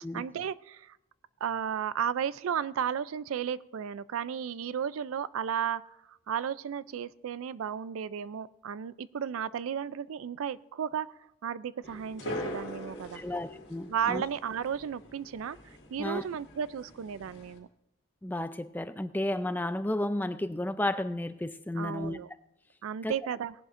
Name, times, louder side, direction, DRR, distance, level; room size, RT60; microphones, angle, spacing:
voice 1, 0.1-1.0 1.4-5.8 6.1-11.1 11.4-13.2 13.9-15.6 15.9-17.7 21.8-22.3 22.8-23.5, right 8 dB, 75° right, 0.4 m, -34 dB
sound 1, 11.8-17.6, left 1 dB, 50° left, 2.2 m, -43 dB
voice 2, 13.1-14.2 16.0-16.2 18.2-22.2 23.0-23.1, left 1 dB, 10° left, 0.3 m, -32 dB
18.5 x 11.0 x 2.5 m
head